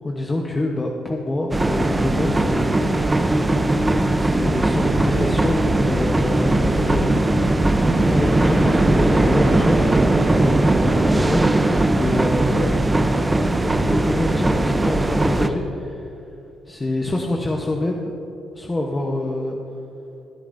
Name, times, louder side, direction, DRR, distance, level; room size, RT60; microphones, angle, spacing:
voice 1, 0.0-3.4 4.1-7.1 7.9-10.4 10.8-11.5 11.9-12.8 13.3-16.1 16.7-18.1 18.6-19.6, left 2 dB, 20° left, 0 dB, 1.0 m, -26 dB
sound 1, 1.5-15.5, right 2 dB, 15° right, 0.6 m, -19 dB
19.0 x 9.9 x 2.6 m, 2.8 s
cardioid pair, 90°, 0 cm